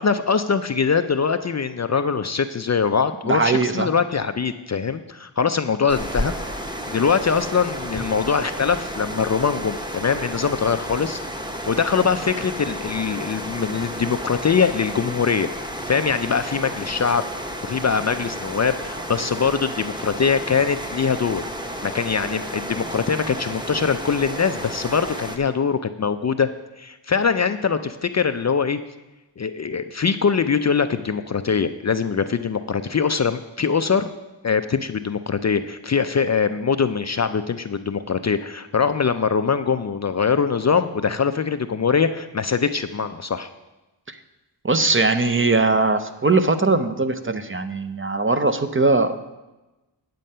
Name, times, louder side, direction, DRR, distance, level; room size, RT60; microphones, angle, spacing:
voice 1, 0.0-6.3 6.9-11.2 11.7-15.5 15.9-17.2 17.6-21.5 21.8-26.5 26.8-28.8 29.4-34.1 34.4-43.5, left 6 dB, 40° left, 10 dB, 0.4 m, -22 dB
voice 2, 3.2-3.9 44.1-44.2 44.6-49.4, right 3 dB, 25° right, 9 dB, 0.6 m, -20 dB
sound 1, 5.9-25.4, equal, 10° right, 0.9 m, -32 dB
9.1 x 7.5 x 5.5 m, 1.1 s
wide cardioid pair, 85°, 46 cm